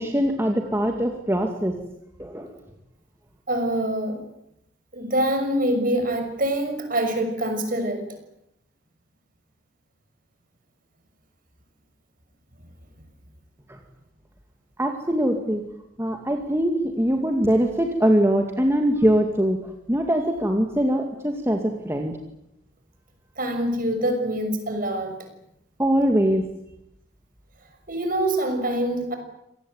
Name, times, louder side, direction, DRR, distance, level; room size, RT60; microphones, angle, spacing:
voice 1, 0.0-1.8 2.2-2.5 13.7-13.8 14.8-15.6 16.0-22.2 25.8-26.5, equal, 15° right, 3 dB, 2.2 m, -22 dB
voice 2, 3.5-4.2 4.9-8.0 23.4-25.2 27.9-29.1, right 1 dB, 45° right, 6 dB, 6.4 m, -25 dB
27.0 x 19.0 x 9.6 m, 0.81 s
head